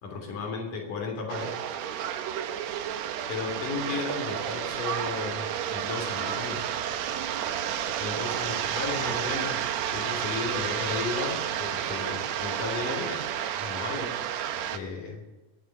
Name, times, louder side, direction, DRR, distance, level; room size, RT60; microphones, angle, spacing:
voice 1, 0.0-1.6 3.3-6.7 8.0-13.3 13.6-14.3 14.7-15.2, left 4 dB, 80° left, 2 dB, 4.8 m, -34 dB
sound 1, 1.3-14.8, right 10 dB, 70° right, 2.0 m, -31 dB
20.5 x 7.6 x 8.2 m, 1.2 s
omnidirectional pair, 3.6 m